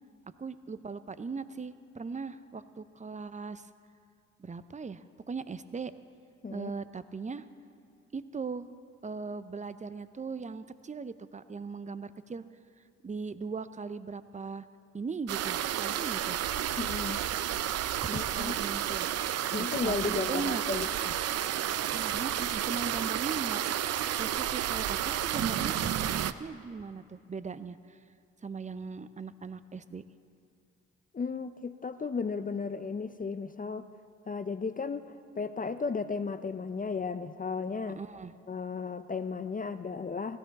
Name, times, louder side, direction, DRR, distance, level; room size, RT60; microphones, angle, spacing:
voice 1, 0.4-3.7 4.4-5.9 6.5-7.5 8.1-8.7 9.0-12.4 13.0-14.7 14.9-16.4 18.0-19.1 19.6-20.9 21.8-23.6 24.2-26.1 26.4-28.0 28.4-30.0 38.0-38.3, right 4 dB, 25° right, 13 dB, 0.7 m, -39 dB
sound 1, 15.3-26.3, right 11 dB, 55° right, 0.6 m, -31 dB
voice 2, 16.8-17.2 18.1-18.5 19.5-21.1 31.1-33.9 34.3-38.0 38.5-40.4, left 5 dB, 30° left, 10 dB, 0.6 m, -34 dB
16.0 x 12.5 x 4.2 m, 2.3 s
hypercardioid pair, 45°, 30 cm